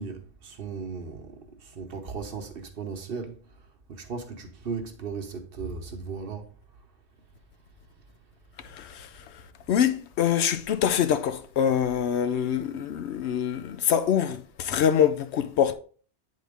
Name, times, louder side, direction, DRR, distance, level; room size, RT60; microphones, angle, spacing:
voice 1, 0.0-3.4 3.9-6.5, right 5 dB, 60° right, 1.1 m, -36 dB
voice 2, 9.7-15.7, left 9 dB, 80° left, 0.9 m, -24 dB
8.4 x 3.8 x 3.4 m
omnidirectional pair, 1.1 m